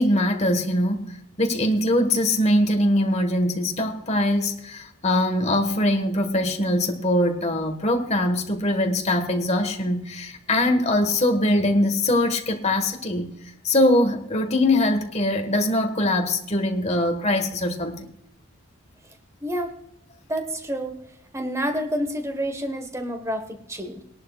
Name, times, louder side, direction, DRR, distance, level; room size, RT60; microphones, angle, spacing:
voice 1, 0.0-13.3 13.6-18.1, left 1 dB, 30° left, 1.4 m, -22 dB
voice 2, 19.4-19.7 20.3-21.0 21.3-24.0, equal, 15° right, 1.2 m, -28 dB
20.5 x 11.0 x 2.4 m
head